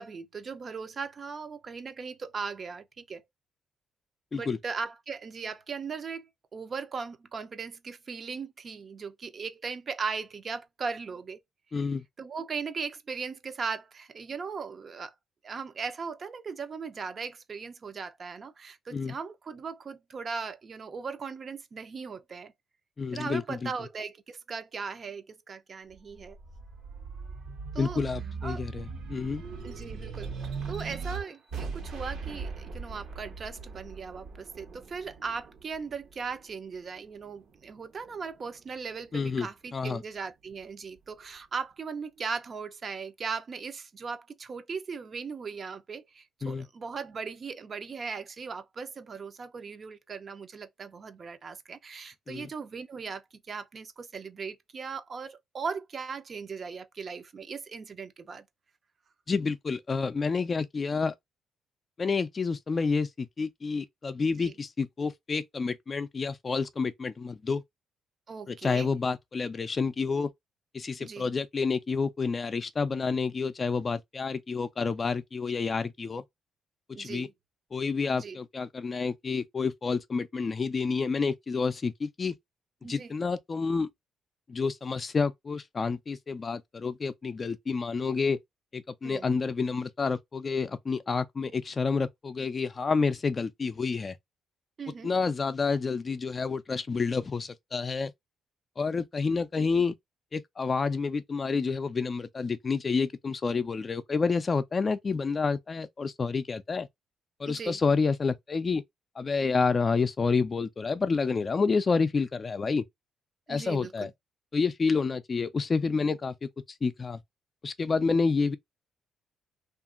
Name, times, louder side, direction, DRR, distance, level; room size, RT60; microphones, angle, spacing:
voice 1, 0.0-3.2 4.3-11.4 12.2-15.1 15.4-22.5 23.1-26.4 27.7-28.0 28.4-28.7 29.6-30.3 30.7-58.4 64.4-64.5 68.3-68.9 71.0-71.3 76.9-77.3 78.2-78.4 82.8-83.2 89.0-89.3 94.8-95.2 107.5-107.8 113.5-114.1, right 5 dB, 45° right, 0.5 m, -38 dB
voice 2, 11.7-12.0 18.9-19.1 23.0-23.7 27.8-29.4 39.1-40.0 46.4-46.7 52.3-52.5 59.3-61.1 62.0-67.6 68.5-70.3 70.7-76.2 77.0-77.3 77.7-82.3 82.9-83.9 84.5-88.4 88.7-94.1 95.0-98.1 98.8-99.9 100.3-106.9 107.4-108.8 109.2-112.8 113.5-114.1 114.5-116.5 116.8-117.2 117.6-118.6, left 4 dB, 35° left, 0.4 m, -29 dB
sound 1, 25.9-36.7 37.2-38.4, right 5 dB, 75° right, 0.9 m, -39 dB
2.8 x 2.5 x 2.4 m
cardioid pair, 90°, 0 cm